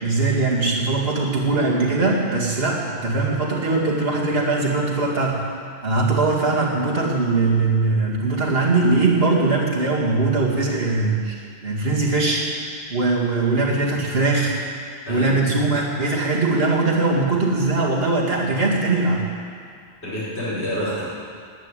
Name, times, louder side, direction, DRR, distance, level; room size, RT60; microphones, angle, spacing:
voice 1, 0.0-5.5 5.8-11.4 11.6-12.5 12.9-14.6 15.1-19.2, right 3 dB, 65° right, -4 dB, 2.5 m, -21 dB
voice 2, 15.1-15.4 20.0-21.0, equal, 85° left, -9 dB, 5.1 m, -27 dB
11.0 x 9.3 x 9.9 m, 2.3 s
omnidirectional pair, 1.1 m